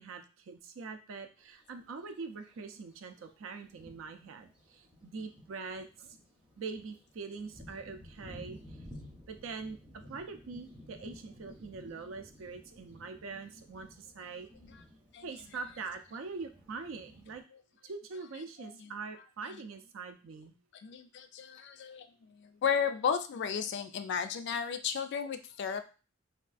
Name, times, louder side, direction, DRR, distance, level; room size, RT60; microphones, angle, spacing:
voice 1, 0.0-6.2 6.6-8.6 9.3-9.8 10.1-14.5 15.2-17.4 17.8-20.5, right 4 dB, 70° right, 7 dB, 0.4 m, -43 dB
Thunder, 1.4-1.5 2.5-2.6 3.2-3.3 3.6-17.4, left 1 dB, 5° right, 0.6 m, -54 dB
voice 2, 18.6-18.9 20.8-25.8, left 7 dB, 60° left, 9 dB, 0.3 m, -34 dB
3.5 x 2.3 x 2.4 m, 0.34 s
head